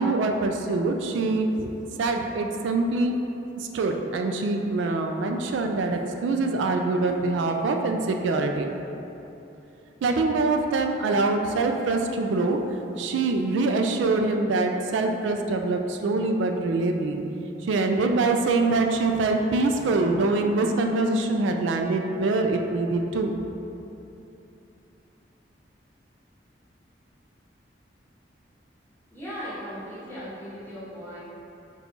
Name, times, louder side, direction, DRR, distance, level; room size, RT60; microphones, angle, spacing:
voice 1, 0.0-1.7 2.0-3.2 3.6-8.7 10.0-12.6 13.0-17.2 17.6-23.4, right 3 dB, 85° right, 4 dB, 0.3 m, -24 dB
voice 2, 29.1-31.2, equal, 10° left, -11 dB, 1.0 m, -37 dB
4.3 x 2.3 x 3.9 m, 2.9 s
head